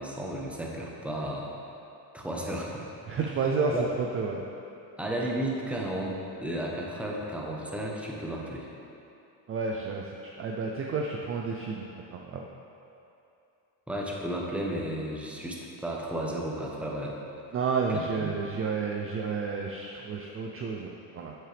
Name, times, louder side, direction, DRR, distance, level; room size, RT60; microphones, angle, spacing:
voice 1, 0.0-1.5 2.1-2.9 3.7-3.8 5.0-8.7 13.9-17.2 17.9-18.3, right 1 dB, 5° right, -2 dB, 0.9 m, -33 dB
voice 2, 3.1-4.5 9.5-12.5 17.5-21.3, right 4 dB, 30° right, 1 dB, 0.5 m, -31 dB
7.6 x 7.6 x 3.4 m, 2.7 s
cardioid pair, 125°, 42 cm